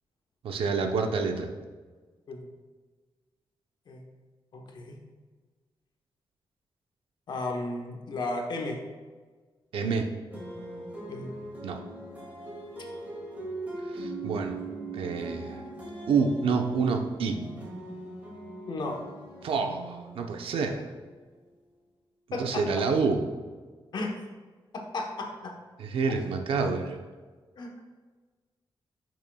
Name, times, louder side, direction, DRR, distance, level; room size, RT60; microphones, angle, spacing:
voice 1, 0.4-1.5 9.7-10.1 11.6-11.8 13.9-14.6 14.9-15.6 16.1-17.4 19.4-20.8 22.4-23.2 25.8-27.0, right 5 dB, 85° right, 4 dB, 0.8 m, -28 dB
voice 2, 4.5-5.0 7.3-8.8 11.1-11.3 18.7-19.0 22.3-22.6 23.9-24.1 24.9-25.5 27.6-27.7, left 2 dB, 55° left, 1 dB, 1.1 m, -34 dB
sound 1, 10.3-21.5, right 2 dB, 20° right, 2.3 m, -41 dB
10.5 x 6.2 x 2.3 m, 1.4 s
wide cardioid pair, 180°, 9 cm